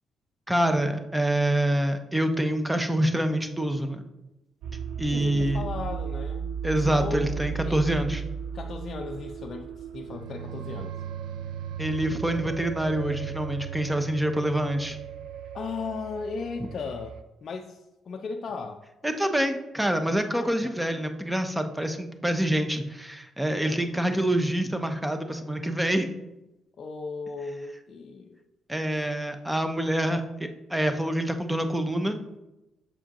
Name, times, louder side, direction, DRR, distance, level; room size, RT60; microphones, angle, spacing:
voice 1, 0.5-4.0 5.0-5.6 6.6-8.2 11.8-15.0 19.0-26.1 28.7-30.2 30.7-32.2, right 1 dB, 5° right, 7 dB, 0.6 m, -26 dB
sound 1, 4.6-17.2, right 7 dB, 80° right, 0.4 m, -36 dB
voice 2, 5.1-7.4 7.6-7.8 8.5-11.0 15.5-17.2 17.4-18.8 20.3-21.0 23.6-24.6 26.8-28.4, left 4 dB, 50° left, 2 dB, 0.4 m, -36 dB
6.8 x 4.9 x 2.9 m, 0.96 s
cardioid pair, 90°, 0 cm